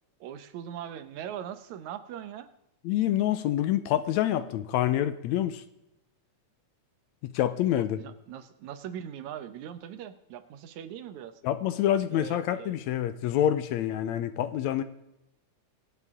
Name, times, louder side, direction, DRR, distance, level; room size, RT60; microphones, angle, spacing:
voice 1, 0.2-2.5 7.8-11.4 12.1-12.8, right 9 dB, 75° right, 11 dB, 2.2 m, -41 dB
voice 2, 2.9-5.6 7.2-8.0 11.4-14.8, left 11 dB, 80° left, 12 dB, 1.9 m, -27 dB
24.5 x 8.2 x 3.7 m, 0.86 s
omnidirectional pair, 3.4 m